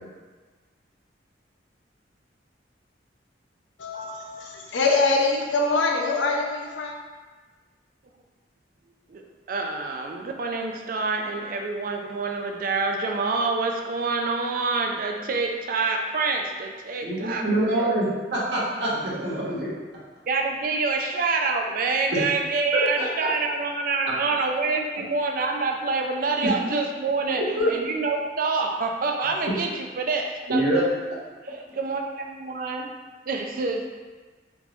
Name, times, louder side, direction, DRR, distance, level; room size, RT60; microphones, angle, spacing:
voice 1, 3.8-6.9, left 3 dB, 90° left, 1 dB, 0.5 m, -24 dB
voice 2, 9.5-17.4 20.3-27.4 27.7-30.8 31.4-32.9 33.3-33.9, right 3 dB, 50° right, 2 dB, 0.4 m, -26 dB
voice 3, 17.0-19.7 22.1-22.2 22.7-23.0 26.4-26.5 27.3-27.8 30.5-30.8, right 1 dB, 70° right, -7 dB, 1.0 m, -25 dB
3.6 x 2.5 x 3.0 m, 1.3 s
head